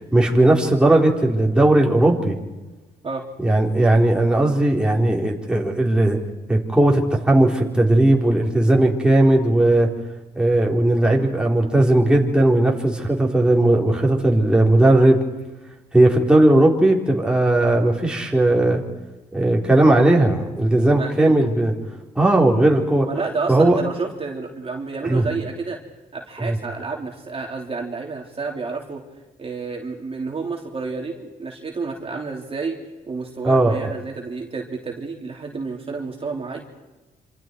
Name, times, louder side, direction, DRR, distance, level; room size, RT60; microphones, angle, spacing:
voice 1, 0.1-2.4 3.4-6.2 6.5-9.9 10.4-15.2 15.9-18.8 19.3-21.7 22.2-23.1 23.5-23.8 25.0-25.3 26.4-26.6 33.4-33.8, right 1 dB, 5° right, -1 dB, 4.1 m, -17 dB
voice 2, 20.9-21.3 23.0-25.8 26.1-29.0 29.4-32.8 33.1-36.6, right 4 dB, 35° right, 1 dB, 3.2 m, -30 dB
27.0 x 27.0 x 4.7 m, 1.2 s
cardioid pair, 105°, 16 cm